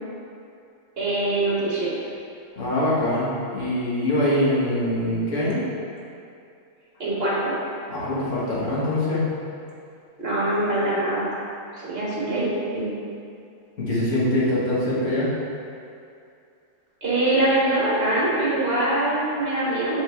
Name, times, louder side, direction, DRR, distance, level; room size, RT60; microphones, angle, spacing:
voice 1, 1.0-1.9 7.0-7.5 10.2-11.3 11.7-12.5 12.7-12.9 17.0-20.0, right 1 dB, 55° right, -7 dB, 1.7 m, -23 dB
voice 2, 2.6-5.6 7.9-9.3 13.8-15.3, left 1 dB, 90° left, -8 dB, 1.8 m, -23 dB
7.1 x 4.2 x 3.4 m, 2.5 s
omnidirectional pair, 1.2 m